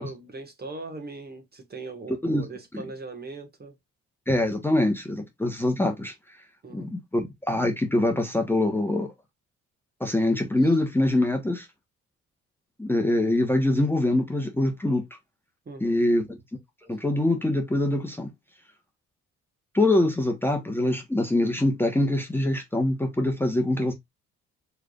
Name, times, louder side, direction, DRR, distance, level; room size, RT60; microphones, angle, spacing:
voice 1, 0.0-3.8 6.6-6.9 10.6-10.7 15.6-16.0, right 3 dB, 30° right, 1.5 m, -40 dB
voice 2, 2.1-2.4 2.7-2.8 4.3-6.1 6.7-9.1 10.0-11.7 12.8-15.0 15.8-16.4 16.9-18.3 19.7-23.9, left 1 dB, 5° left, 1.1 m, -24 dB
4.7 x 3.3 x 2.4 m
cardioid pair, 90°, 30 cm